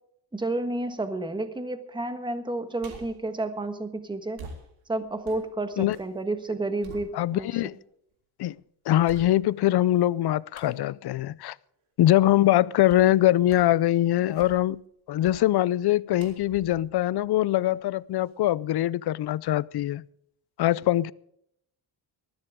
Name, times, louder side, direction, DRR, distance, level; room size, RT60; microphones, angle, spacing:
voice 1, 0.3-4.4 4.9-7.5, right 2 dB, 10° right, 1.4 m, -31 dB
sound 1, 2.8-3.3 4.3-6.1 6.5-7.6 8.1-8.2 9.0-9.7 10.5-10.8 12.9-13.1 13.5-13.8 14.2-14.8 15.2-15.5 16.2-17.8 18.2-18.3, right 3 dB, 80° right, 3.8 m, -47 dB
voice 2, 7.1-7.8 8.4-8.6 8.9-11.5 12.0-14.8 15.1-20.0 20.6-21.1, left 14 dB, 55° left, 0.6 m, -23 dB
19.5 x 14.0 x 3.6 m
cardioid pair, 135°, 47 cm